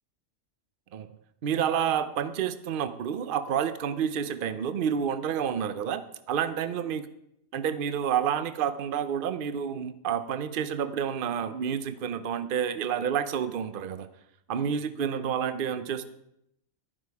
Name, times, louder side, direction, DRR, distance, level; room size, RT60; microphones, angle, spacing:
voice 1, 1.4-6.0 6.3-7.0 7.5-14.1 14.5-16.0, right 8 dB, 50° right, 12 dB, 0.7 m, -29 dB
11.5 x 11.0 x 4.7 m, 0.76 s
omnidirectional pair, 1.5 m